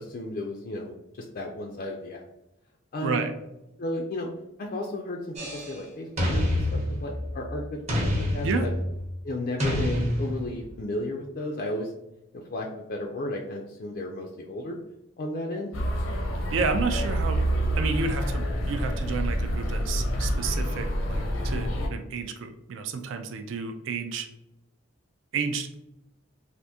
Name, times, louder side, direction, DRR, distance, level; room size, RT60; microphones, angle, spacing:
voice 1, 0.0-2.2 2.9-3.3 3.8-4.3 4.6-8.7 9.2-11.9 12.3-14.8 15.2-15.7, left 1 dB, 45° left, 1 dB, 0.3 m, -34 dB
sound 1, 5.4-5.8 6.2-7.5 7.9-9.0 9.6-10.7, left 1 dB, 30° right, 0.8 m, -27 dB
sound 2, 15.7-21.9, equal, 85° left, 0.6 m, -27 dB
voice 2, 16.5-17.4 17.8-24.3 25.3-25.7, right 4 dB, 70° right, 7 dB, 0.3 m, -31 dB
3.4 x 2.5 x 2.7 m, 0.90 s
head